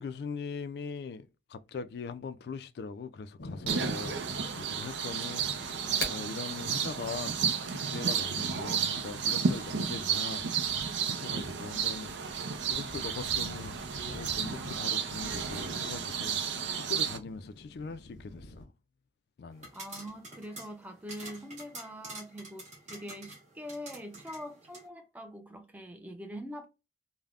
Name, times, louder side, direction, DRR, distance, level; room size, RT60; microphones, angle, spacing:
voice 1, 0.0-4.3 4.5-10.5 11.1-13.8 14.1-16.4 16.8-18.7 19.4-19.7, left 4 dB, 60° left, 0.3 m, -41 dB
sound 1, 3.4-18.7, left 2 dB, 90° left, 0.7 m, -47 dB
sound 2, 3.7-17.2, right 6 dB, 80° right, 0.5 m, -32 dB
sound 3, 19.5-24.9, right 2 dB, 40° right, 1.4 m, -48 dB
voice 2, 19.7-26.7, equal, 10° right, 0.5 m, -43 dB
3.3 x 2.1 x 2.3 m
head